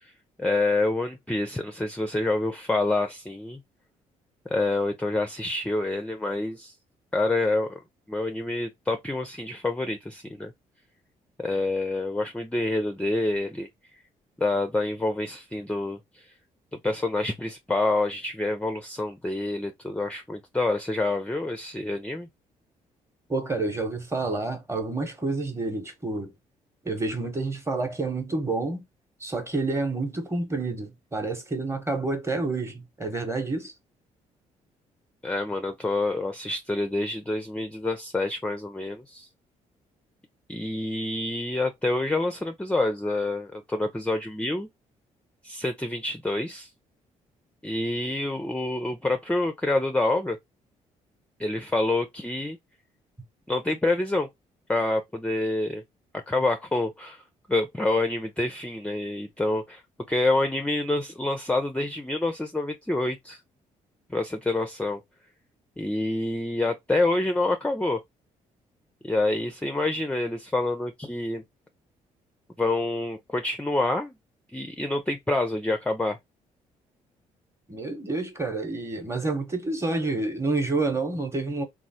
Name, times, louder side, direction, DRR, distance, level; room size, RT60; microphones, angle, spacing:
voice 1, 0.4-3.6 4.5-6.7 7.1-7.8 8.1-10.5 11.4-13.7 14.4-16.0 16.8-22.3 35.2-39.3 40.5-44.7 45.4-46.7 47.6-50.4 51.4-52.6 53.5-54.3 54.7-55.8 56.3-57.2 57.5-59.8 60.1-63.4 64.1-65.0 65.8-68.0 69.0-71.4 72.6-74.1 74.5-76.2, left 2 dB, 5° left, 0.4 m, -27 dB
voice 2, 23.3-26.3 26.8-28.8 29.2-33.7 77.7-81.6, right 3 dB, 15° right, 0.9 m, -29 dB
3.0 x 2.0 x 2.7 m
hypercardioid pair, 50°, 17 cm